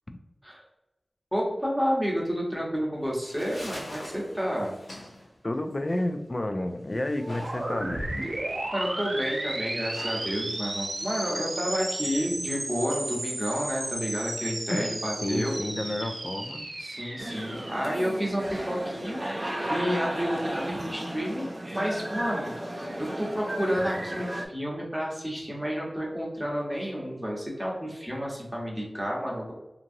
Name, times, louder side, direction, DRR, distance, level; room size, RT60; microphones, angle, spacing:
voice 1, 1.3-4.7 8.7-15.5 16.8-22.5 23.0-29.5, equal, 5° right, -3 dB, 0.9 m, -30 dB
sound 1, 2.9-11.9, left 1 dB, 85° left, 0.8 m, -46 dB
voice 2, 5.4-8.2 14.7-14.8 15.2-16.7, left 1 dB, 40° left, 6 dB, 0.3 m, -30 dB
sound 2, 7.2-18.9, right 1 dB, 85° right, 0.7 m, -34 dB
sound 3, 17.2-24.4, right 1 dB, 30° right, 0.4 m, -34 dB
2.9 x 2.6 x 2.6 m, 0.99 s
wide cardioid pair, 75°, 0 cm